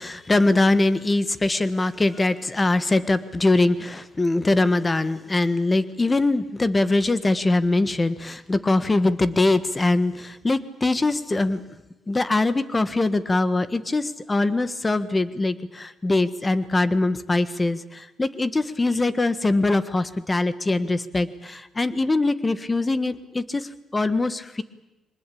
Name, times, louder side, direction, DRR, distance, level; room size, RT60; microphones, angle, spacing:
voice 1, 0.0-11.6 12.1-24.6, left 2 dB, 20° left, 14 dB, 1.4 m, -22 dB
23.5 x 20.5 x 8.7 m, 1.0 s
cardioid pair, 90°, 0 cm